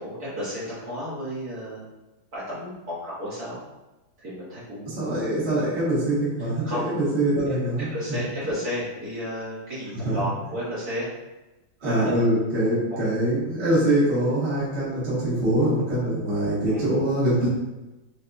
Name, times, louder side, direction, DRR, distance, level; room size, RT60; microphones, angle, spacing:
voice 1, 0.0-1.9 2.3-3.6 4.2-5.1 6.4-6.8 7.4-7.5 7.9-11.1 11.8-12.1 12.9-13.0 16.7-16.9, equal, 50° right, -10 dB, 1.9 m, -33 dB
voice 2, 5.0-7.9 10.0-10.1 11.8-17.5, right 1 dB, 35° right, -10 dB, 1.7 m, -23 dB
5.7 x 2.7 x 2.6 m, 1.1 s
omnidirectional pair, 2.1 m